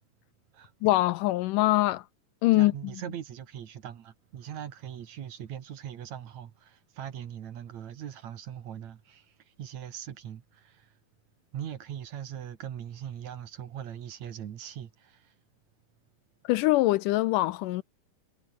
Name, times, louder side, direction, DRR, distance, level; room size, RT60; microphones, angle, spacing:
voice 1, 0.8-2.0 2.4-2.7 16.5-17.8, left 18 dB, 80° left, 2.0 m, -23 dB
voice 2, 2.5-9.3 9.6-10.9 11.5-15.2, right 9 dB, 60° right, 2.7 m, -40 dB
omnidirectional pair, 4.0 m